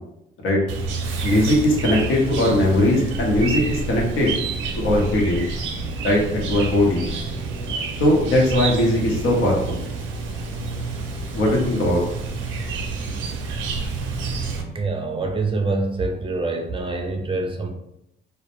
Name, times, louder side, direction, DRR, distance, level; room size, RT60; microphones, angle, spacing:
Chirp tweet, 0.7-14.6, right 4 dB, 85° right, 0.5 m, -29 dB
voice 1, 1.2-4.3 4.8-5.4 6.0-7.1 8.0-9.8 11.3-12.0, left 1 dB, 80° left, -2 dB, 0.8 m, -19 dB
voice 2, 14.7-17.7, right 3 dB, 25° right, 4 dB, 0.4 m, -25 dB
2.2 x 2.1 x 2.9 m, 0.80 s
cardioid pair, 90°, 20 cm